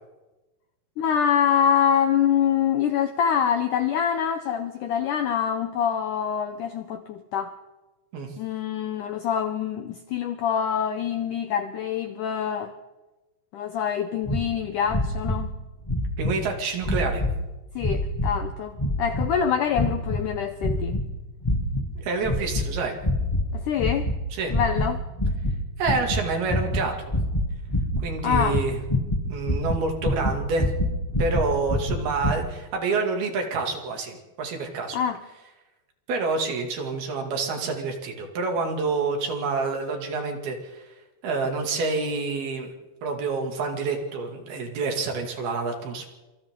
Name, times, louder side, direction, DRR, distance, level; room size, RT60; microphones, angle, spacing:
voice 1, 1.0-7.5 8.4-12.7 13.5-15.5 17.8-21.0 23.5-24.1 24.5-25.0 28.2-28.6 34.9-35.2, left 8 dB, 75° left, 8 dB, 1.9 m, -25 dB
sound 1, 14.3-14.4 14.9-15.5 15.8-16.4 16.8-17.4 17.8-18.4 18.8-19.4 19.7-20.2 20.6-21.1 21.4-21.9 22.2-22.7 23.0-23.5 23.8-24.2 24.5-24.9 25.2-32.3, left 1 dB, 10° left, 2.0 m, -26 dB
voice 2, 16.2-17.3 22.0-23.0 24.3-24.6 25.8-27.2 28.0-28.8 29.3-30.7 31.2-35.0 36.1-40.9 41.2-42.7 43.0-46.1, right 4 dB, 70° right, 2 dB, 4.3 m, -28 dB
26.5 x 26.5 x 3.8 m, 1.1 s
omnidirectional pair, 4.7 m